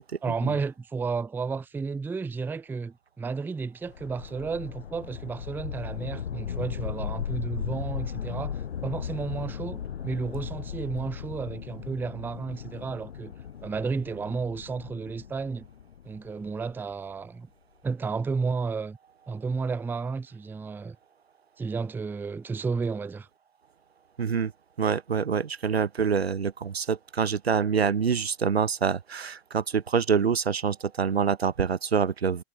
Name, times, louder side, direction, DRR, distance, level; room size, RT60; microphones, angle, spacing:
voice 1, 0.2-13.3 13.6-15.7 16.0-17.5 17.8-19.0 19.3-21.0 21.6-23.3, right 4 dB, 5° right, 0.5 m, -32 dB
sound 1, 3.8-16.9, left 8 dB, 80° left, 0.6 m, -37 dB
voice 2, 24.2-24.5 24.8-32.4, right 6 dB, 80° right, 1.0 m, -26 dB
figure-of-eight pair, 95°, 31 cm